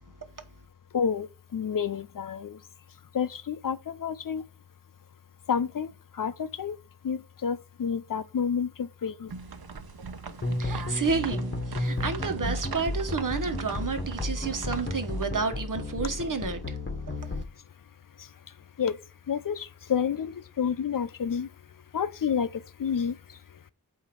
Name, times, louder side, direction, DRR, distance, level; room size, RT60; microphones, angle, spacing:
voice 1, 0.9-2.6 3.1-4.4 5.5-5.9 6.2-6.7 7.0-9.3 18.8-18.9 19.3-21.5 21.9-22.5 22.8-23.1, left 7 dB, 60° left, 0.6 m, -29 dB
sound 1, 9.3-15.2, right 5 dB, 75° right, 0.9 m, -40 dB
sound 2, 10.4-17.4, left 2 dB, 30° left, 1.4 m, -33 dB
voice 2, 10.5-16.8 17.2-17.4, right 4 dB, 55° right, 1.2 m, -31 dB
8.2 x 2.9 x 5.9 m
wide cardioid pair, 65°, 37 cm